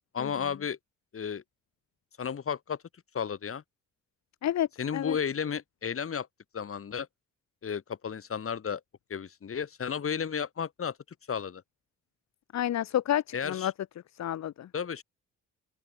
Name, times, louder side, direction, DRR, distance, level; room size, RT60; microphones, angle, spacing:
voice 1, 0.1-0.8 1.1-1.4 2.2-2.8 3.1-3.6 4.8-6.3 6.5-7.1 7.6-8.8 9.1-11.0 11.3-11.6 13.3-13.7 14.7-15.0, left 7 dB, 45° left, 5.6 m, -33 dB
voice 2, 12.5-13.7 14.1-14.7, left 11 dB, 60° left, 1.4 m, -29 dB
open air
cardioid pair, 90°, 30 cm